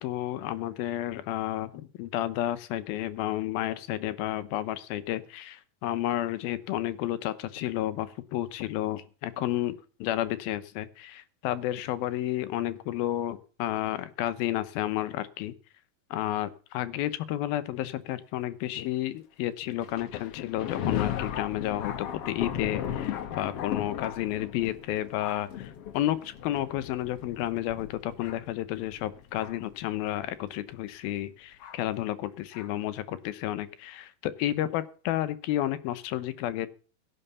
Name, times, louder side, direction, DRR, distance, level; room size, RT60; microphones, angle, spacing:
voice 1, 0.0-15.5 16.1-36.7, left 13 dB, 85° left, 14 dB, 2.8 m, -31 dB
Thunder, 19.8-29.7 30.5-30.6 31.6-31.8 32.5-32.7, left 9 dB, 60° left, 1.7 m, -36 dB
17.0 x 6.5 x 7.0 m, 0.38 s
omnidirectional pair, 4.1 m